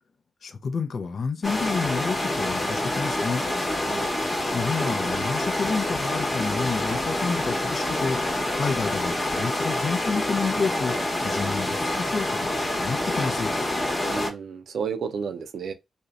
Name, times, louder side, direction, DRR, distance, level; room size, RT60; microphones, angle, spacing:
voice 1, 0.4-3.4 4.5-11.0 11.2-13.5, left 5 dB, 60° left, 0.4 m, -29 dB
sound 1, 1.4-14.3, left 1 dB, 40° left, 0.9 m, -27 dB
voice 2, 14.1-15.7, right 6 dB, 75° right, 0.4 m, -31 dB
2.6 x 2.1 x 2.4 m
supercardioid pair, 45°, 0 cm